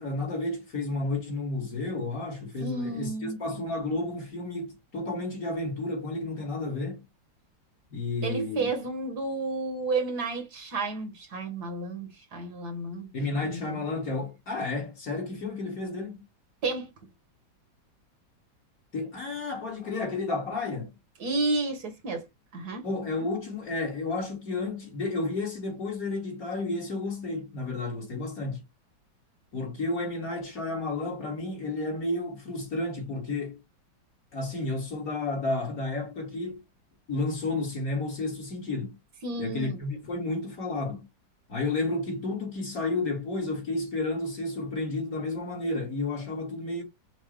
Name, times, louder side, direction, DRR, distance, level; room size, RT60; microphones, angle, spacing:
voice 1, 0.0-7.0 7.9-8.7 13.1-16.2 18.9-21.0 22.8-28.6 29.5-33.6 34.3-36.6 37.1-38.9 39.4-41.1 41.5-46.8, left 2 dB, 50° left, 2.6 m, -31 dB
voice 2, 2.6-3.4 8.2-13.1 13.4-13.8 16.6-16.9 21.2-22.3 22.5-22.9 39.2-39.8, right 3 dB, 60° right, 1.6 m, -31 dB
6.0 x 2.7 x 3.2 m
omnidirectional pair, 2.0 m